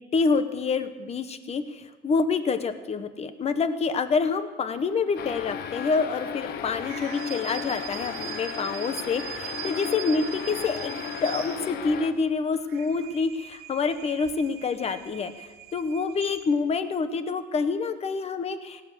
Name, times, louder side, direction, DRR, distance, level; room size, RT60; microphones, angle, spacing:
voice 1, 0.0-18.8, left 4 dB, 40° left, 11 dB, 1.1 m, -27 dB
sound 1, 4.5-11.9, left 3 dB, 85° left, 2.8 m, -50 dB
sound 2, 5.2-12.1, left 8 dB, 65° left, 0.9 m, -35 dB
sound 3, 6.8-12.1 12.5-16.8, right 14 dB, 70° right, 0.8 m, -41 dB
17.5 x 7.1 x 7.9 m, 1.3 s
cardioid pair, 110°, 17 cm